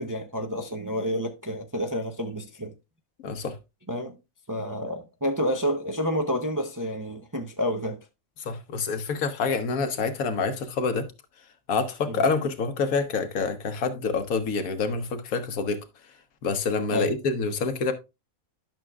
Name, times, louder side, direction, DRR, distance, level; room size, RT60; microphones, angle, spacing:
voice 1, 0.0-2.7 3.9-4.2 4.5-8.0 12.1-12.2 16.9-17.1, equal, 25° right, 0.4 m, -29 dB
voice 2, 3.2-3.6 8.4-11.1 11.7-15.8 16.4-17.9, left 4 dB, 80° left, 1.4 m, -27 dB
11.0 x 6.2 x 2.3 m
omnidirectional pair, 1.5 m